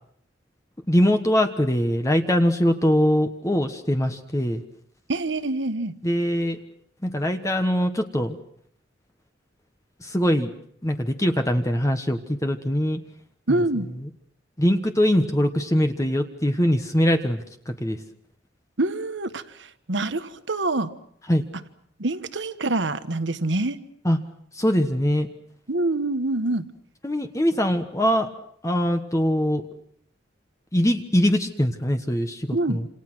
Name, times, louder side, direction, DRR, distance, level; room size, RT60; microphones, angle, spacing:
voice 1, 0.9-4.6 6.0-6.6 7.0-8.4 10.0-10.5 10.8-13.0 14.0-14.1 14.6-18.0 21.3-21.4 24.0-24.2 24.5-25.3 27.0-28.3 28.6-29.6 30.7-32.9, equal, 15° left, 6 dB, 1.3 m, -22 dB
voice 2, 5.1-5.9 13.5-13.9 18.8-19.4 19.9-20.9 22.0-23.8 25.7-26.7 32.5-32.8, right 2 dB, 75° right, 11 dB, 1.4 m, -25 dB
28.0 x 27.5 x 6.2 m, 0.68 s
head